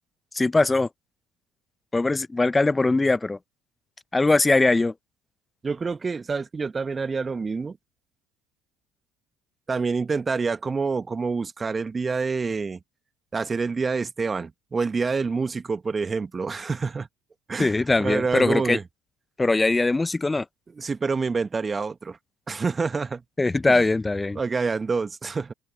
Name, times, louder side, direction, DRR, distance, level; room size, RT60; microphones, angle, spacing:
voice 1, 0.3-0.9 1.9-3.4 4.1-4.9 17.6-18.8 19.4-20.4 23.4-24.4, left 3 dB, 15° left, 0.9 m, -21 dB
voice 2, 5.6-7.8 9.7-12.8 13.3-17.1 17.5-18.8 20.8-22.2 22.5-23.2 23.7-23.8 24.3-25.5, right 4 dB, 30° right, 1.7 m, -27 dB
open air
figure-of-eight pair, 60°, 0 cm